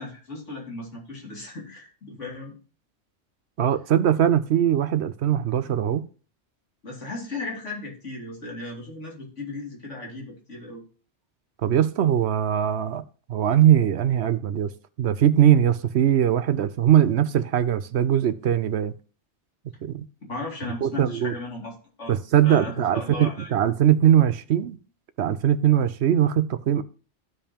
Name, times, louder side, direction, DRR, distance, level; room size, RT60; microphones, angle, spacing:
voice 1, 0.0-2.5 6.8-10.8 20.2-21.7 22.0-22.2 22.4-23.5, left 2 dB, 90° left, 2.9 m, -36 dB
voice 2, 3.6-6.1 11.6-13.0 13.3-14.7 15.0-18.9 19.8-20.1 20.8-21.3 22.1-24.8 25.2-26.8, right 10 dB, 70° right, 0.9 m, -21 dB
14.5 x 5.2 x 2.9 m
omnidirectional pair, 1.2 m